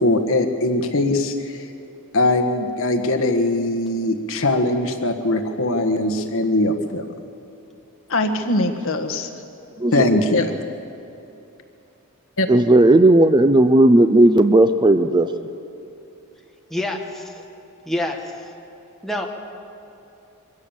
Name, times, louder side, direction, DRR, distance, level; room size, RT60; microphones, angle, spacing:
voice 1, 0.0-1.6 2.1-7.1 8.1-9.3 9.9-10.6 12.4-12.5, left 2 dB, 65° left, 5 dB, 1.5 m, -21 dB
voice 2, 12.5-15.3, right 1 dB, 20° right, 10 dB, 0.5 m, -14 dB
voice 3, 16.7-17.4 17.9-18.5 19.0-19.3, left 1 dB, ahead, 0 dB, 1.7 m, -27 dB
23.5 x 16.0 x 7.3 m, 2.8 s
head